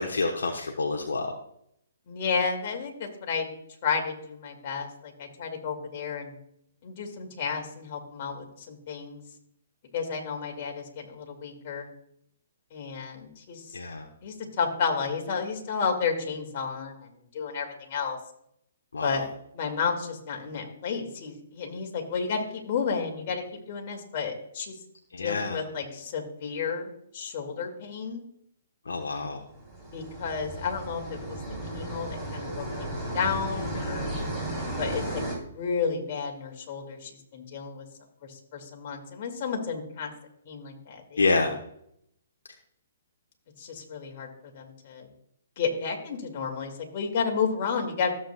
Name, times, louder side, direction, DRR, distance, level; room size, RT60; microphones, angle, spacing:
voice 1, 0.0-1.3 13.7-14.1 18.9-19.2 25.1-25.6 28.9-29.4 41.2-41.5, left 3 dB, 70° left, 2 dB, 1.0 m, -27 dB
voice 2, 2.1-3.5 3.8-6.3 6.8-9.2 9.9-11.9 12.7-13.6 14.2-18.2 19.0-19.3 19.5-24.8 25.2-28.2 29.9-31.4 31.7-34.1 34.8-35.2 35.5-37.8 38.3-40.1 40.5-41.5 43.6-44.3 44.5-45.1 45.6-48.1, left 5 dB, 45° left, 2 dB, 2.1 m, -32 dB
sound 1, 29.5-35.4, right 1 dB, 5° right, 3.5 m, -34 dB
14.0 x 7.4 x 2.3 m, 0.73 s
figure-of-eight pair, 125°, 0 cm